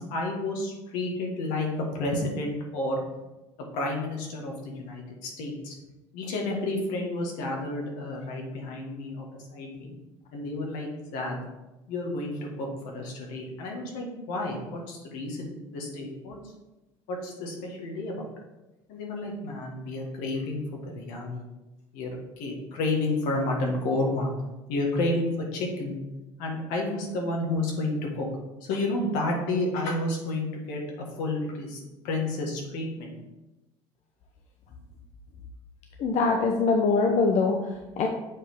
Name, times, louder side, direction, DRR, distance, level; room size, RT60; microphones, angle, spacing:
voice 1, 0.0-3.0 3.7-5.7 6.1-9.9 10.3-11.4 11.9-16.4 17.1-18.3 18.9-21.5 21.9-24.3 24.7-26.0 26.4-28.3 28.6-30.8 31.1-33.1, left 2 dB, 75° left, 0 dB, 1.6 m, -31 dB
voice 2, 36.0-38.1, left 4 dB, 55° left, 2 dB, 0.8 m, -23 dB
7.4 x 4.1 x 3.6 m, 1.0 s
hypercardioid pair, 80°, 14 cm